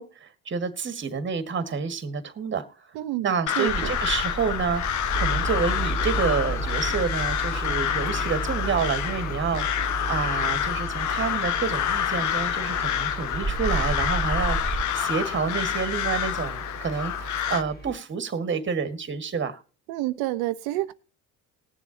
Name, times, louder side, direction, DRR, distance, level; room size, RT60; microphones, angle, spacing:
voice 1, 0.0-2.9 3.2-19.6, right 5 dB, 30° right, 1.6 m, -29 dB
voice 2, 2.9-3.3 3.6-3.9 19.9-20.9, right 16 dB, 85° right, 0.9 m, -28 dB
Crow, 3.5-17.6, left 10 dB, 55° left, 0.8 m, -28 dB
sound 1, 3.7-14.8, right 3 dB, 10° right, 2.1 m, -35 dB
sound 2, 5.1-17.9, right 2 dB, 25° left, 2.8 m, -34 dB
19.5 x 7.2 x 2.8 m
cardioid pair, 100°, 36 cm